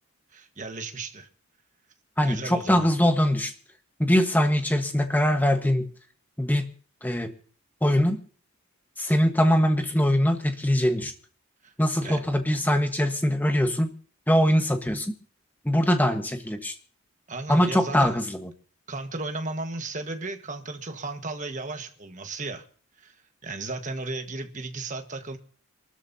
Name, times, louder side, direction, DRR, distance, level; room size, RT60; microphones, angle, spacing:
voice 1, 0.3-1.3 2.2-2.9 11.6-11.7 12.0-12.2 17.3-18.2 18.9-22.6 23.0-23.2 23.4-25.4, right 3 dB, 35° right, 1.5 m, -35 dB
voice 2, 2.2-3.5 4.0-5.9 6.4-6.7 7.0-7.3 7.8-8.2 9.0-11.1 11.8-13.9 14.3-15.1 15.6-16.7 17.5-18.5, equal, 10° left, 1.3 m, -22 dB
27.0 x 13.0 x 2.8 m
head